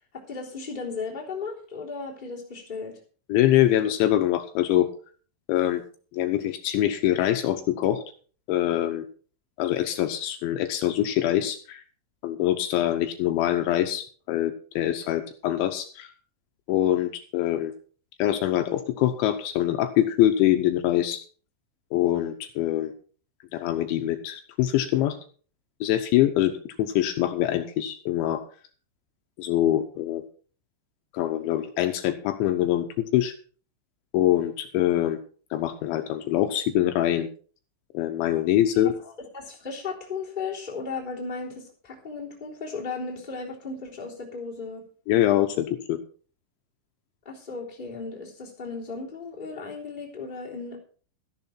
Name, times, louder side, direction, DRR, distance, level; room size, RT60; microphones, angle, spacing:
voice 1, 0.1-3.0 38.7-44.8 47.2-50.8, left 4 dB, 10° left, -3 dB, 2.8 m, -35 dB
voice 2, 3.3-4.9 5.5-5.8 6.1-8.0 8.5-9.1 9.6-11.8 12.2-16.1 16.7-17.7 18.2-21.2 21.9-22.9 23.5-25.2 25.8-26.5 26.8-28.4 29.4-30.2 31.1-33.3 34.1-35.2 35.5-37.3 37.9-38.9 45.1-46.0, left 12 dB, 80° left, 6 dB, 3.0 m, -24 dB
14.0 x 11.0 x 4.4 m, 0.43 s
omnidirectional pair, 5.6 m